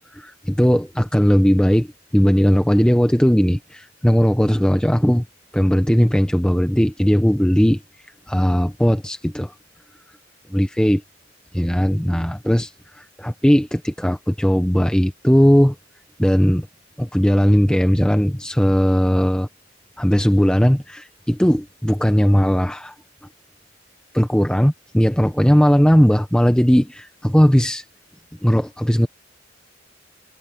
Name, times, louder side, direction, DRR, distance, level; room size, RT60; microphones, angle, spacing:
voice 1, 0.2-1.9 2.1-5.2 5.5-7.8 8.3-9.5 10.5-11.0 11.5-15.7 16.2-16.7 17.0-19.5 20.0-22.9 24.1-27.8 28.4-29.1, equal, 5° left, 0.9 m, -17 dB
head